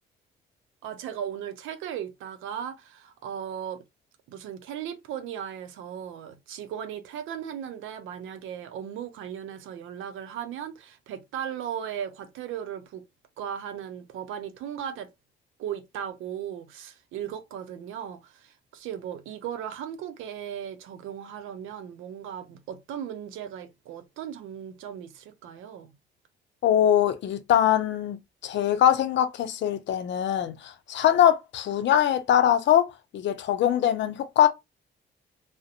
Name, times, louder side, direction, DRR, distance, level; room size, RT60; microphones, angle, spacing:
voice 1, 0.8-3.8 4.3-13.0 13.4-15.1 15.6-25.9, right 9 dB, 85° right, 0.5 m, -37 dB
voice 2, 26.6-34.5, left 10 dB, 65° left, 0.5 m, -22 dB
2.5 x 2.0 x 2.7 m
cardioid pair, 90°, 20 cm